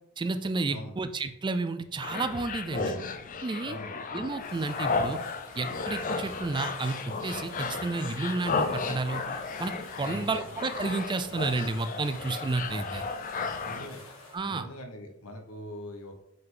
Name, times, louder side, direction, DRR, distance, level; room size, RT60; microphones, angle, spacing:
voice 1, 0.2-3.0 3.4-3.8 4.1-5.2 5.6-9.2 9.6-13.0 14.3-14.7, right 3 dB, 20° right, 10 dB, 0.3 m, -31 dB
sound 1, 2.0-13.9, left 4 dB, 40° left, 0.5 m, -34 dB
sound 2, 4.4-14.4, left 2 dB, 65° left, 1.5 m, -48 dB
voice 2, 10.0-10.5 13.6-14.0 14.4-16.1, left 1 dB, 90° left, 4 dB, 1.1 m, -42 dB
5.6 x 5.4 x 3.8 m, 0.80 s
head